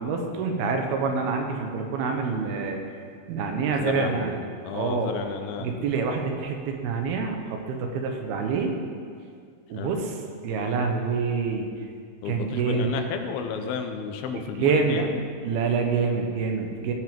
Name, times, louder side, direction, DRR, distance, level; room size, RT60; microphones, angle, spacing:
voice 1, 0.0-2.8 3.3-4.4 4.7-5.2 5.6-8.7 9.7-10.2 10.4-11.7 12.3-13.0 14.6-15.0 15.4-16.9, right 5 dB, 85° right, 3 dB, 3.0 m, -26 dB
voice 2, 3.8-5.7 9.7-9.9 12.2-15.1, left 6 dB, 85° left, 6 dB, 2.8 m, -32 dB
17.5 x 6.1 x 5.2 m, 2.2 s
omnidirectional pair, 4.3 m